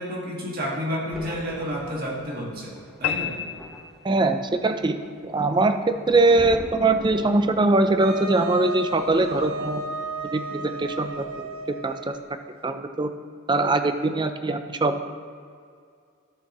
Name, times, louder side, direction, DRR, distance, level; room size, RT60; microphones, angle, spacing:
voice 1, 0.0-2.7 3.0-3.4, equal, 45° right, -3 dB, 1.9 m, -30 dB
Thunder, 1.1-11.7 12.0-12.3, equal, ahead, 1.0 m, -44 dB
sound 1, 3.0-4.6, left 10 dB, 80° left, 0.4 m, -31 dB
voice 2, 4.0-5.0 5.2-9.8 10.2-12.2 12.6-13.1 13.5-15.0, right 2 dB, 20° right, 8 dB, 0.5 m, -22 dB
Wind instrument woodwind instrument, 8.0-12.4, right 1 dB, 80° right, 0.7 m, -33 dB
13.5 x 7.1 x 3.0 m, 2.2 s
head